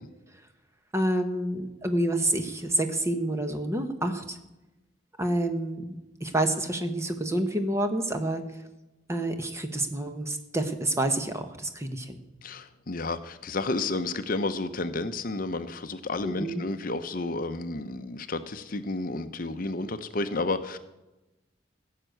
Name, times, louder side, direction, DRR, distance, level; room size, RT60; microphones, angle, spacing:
voice 1, 0.9-4.4 5.2-5.9 6.2-8.4 9.1-12.2 16.2-16.6, right 1 dB, 15° right, 7 dB, 1.1 m, -28 dB
voice 2, 12.4-20.8, left 2 dB, 45° left, 10 dB, 0.7 m, -31 dB
15.5 x 6.7 x 9.1 m, 1.0 s
head